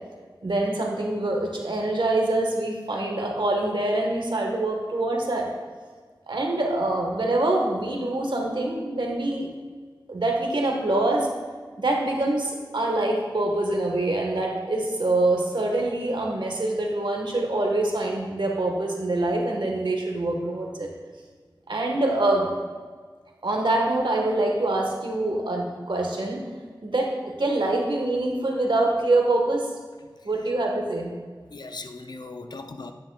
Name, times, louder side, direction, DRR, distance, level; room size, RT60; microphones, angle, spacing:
voice 1, 0.4-5.5 6.3-9.5 10.1-11.3 11.8-20.9 21.7-22.5 23.4-26.4 26.8-27.1 27.4-29.7 30.2-31.1, right 2 dB, 80° right, 1 dB, 1.4 m, -25 dB
voice 2, 31.4-32.9, left 3 dB, 60° left, 6 dB, 0.7 m, -39 dB
10.0 x 9.2 x 2.3 m, 1.5 s
wide cardioid pair, 50°, 8 cm